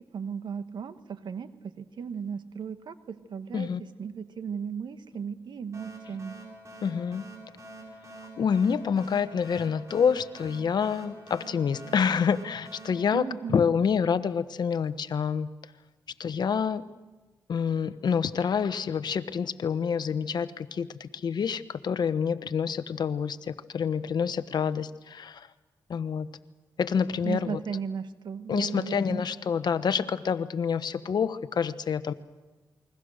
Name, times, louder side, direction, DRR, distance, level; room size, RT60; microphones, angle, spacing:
voice 1, 0.1-3.7 4.0-6.4 13.1-13.6 27.2-29.2, right 6 dB, 70° right, 10 dB, 1.4 m, -36 dB
sound 1, 5.7-14.1, right 2 dB, 40° right, 7.5 m, -47 dB
voice 2, 6.8-7.3 8.4-13.2 13.5-15.5 16.2-16.8 17.5-25.5 25.9-26.3 26.8-27.6 28.5-32.1, left 6 dB, 60° left, 12 dB, 1.1 m, -27 dB
28.5 x 22.0 x 6.5 m, 1.2 s
cardioid pair, 75°, 8 cm